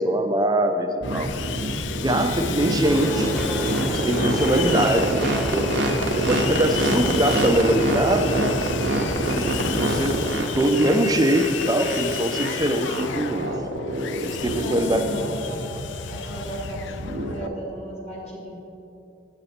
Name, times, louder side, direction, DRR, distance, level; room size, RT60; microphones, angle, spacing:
voice 1, 0.0-1.3 1.9-3.4 3.7-5.7 6.1-8.4 9.4-9.5 9.8-13.5 14.2-15.0, right 1 dB, 20° right, 6 dB, 0.5 m, -22 dB
Sawing, 1.0-17.5, left 8 dB, 75° left, 0.3 m, -33 dB
sound 1, 1.0-17.5, right 1 dB, 75° right, 0.8 m, -26 dB
sound 2, 2.8-8.2, equal, ahead, 1.0 m, -36 dB
voice 2, 14.5-15.6 16.1-16.9 17.3-18.6, right 1 dB, 35° left, -3 dB, 2.0 m, -35 dB
9.0 x 6.5 x 4.3 m, 2.9 s
head